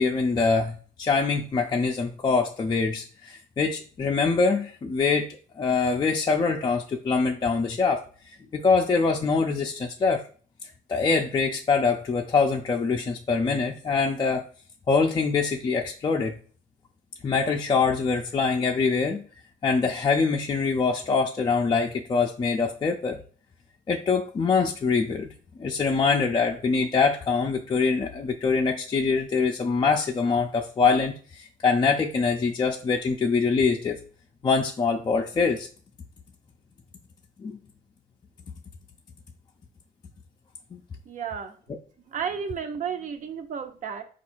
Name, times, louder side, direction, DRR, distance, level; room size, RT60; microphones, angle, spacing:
voice 1, 0.0-5.3 5.6-8.0 8.5-10.2 10.9-14.4 14.9-16.3 17.2-19.2 19.6-23.2 23.9-25.3 25.6-34.0 34.4-35.7 37.4-37.6 40.7-40.8, left 4 dB, 25° left, 1 dB, 0.4 m, -24 dB
voice 2, 41.1-41.5 42.1-44.0, right 7 dB, 50° right, 7 dB, 0.7 m, -32 dB
4.3 x 2.4 x 4.4 m, 0.42 s
cardioid pair, 110°, 17 cm